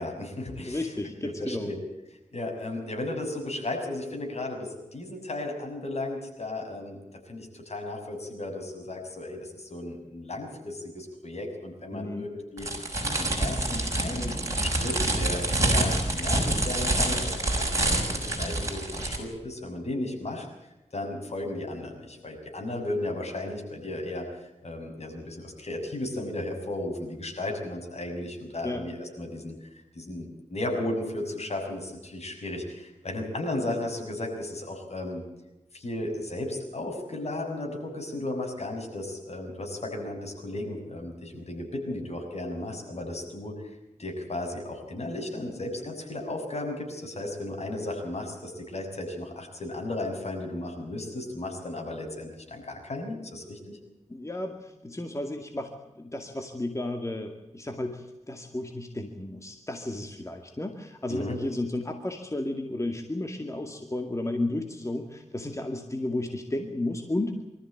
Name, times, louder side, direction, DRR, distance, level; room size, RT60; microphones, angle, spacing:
voice 1, 0.0-0.9 1.2-1.8 2.3-7.0 7.3-12.7 13.0-20.5 20.9-24.3 24.6-29.7 29.9-35.2 35.7-43.5 44.0-53.8 61.1-61.4, left 1 dB, 60° left, 2 dB, 6.7 m, -35 dB
voice 2, 0.6-1.7 11.9-12.3 28.6-28.8 54.1-67.3, left 2 dB, 25° left, 5 dB, 2.2 m, -33 dB
sound 1, 12.6-19.2, right 2 dB, 25° right, 6.1 m, -27 dB
24.5 x 14.0 x 8.9 m, 0.99 s
wide cardioid pair, 65°, 12 cm